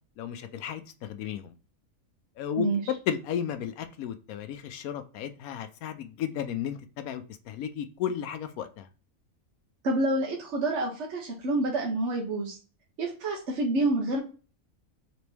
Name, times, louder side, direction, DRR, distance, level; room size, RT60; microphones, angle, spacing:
voice 1, 0.2-1.5 2.4-2.7 3.1-8.9, left 9 dB, 80° left, 9 dB, 1.0 m, -34 dB
voice 2, 9.8-12.6 13.0-14.2, right 2 dB, 55° right, -1 dB, 1.1 m, -28 dB
4.3 x 3.0 x 3.2 m, 0.36 s
omnidirectional pair, 1.5 m